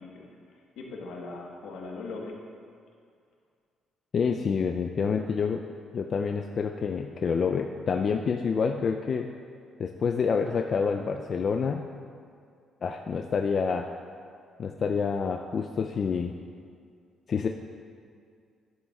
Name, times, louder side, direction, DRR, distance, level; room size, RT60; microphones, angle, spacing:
voice 1, 0.0-2.4, left 3 dB, 80° left, -1 dB, 1.2 m, -40 dB
voice 2, 4.1-5.6 5.9-9.3 9.8-11.8 12.8-13.9 14.6-16.3 17.3-17.5, left 5 dB, 50° left, 4 dB, 0.3 m, -27 dB
11.0 x 7.4 x 2.3 m, 2.3 s
cardioid pair, 90°, 0 cm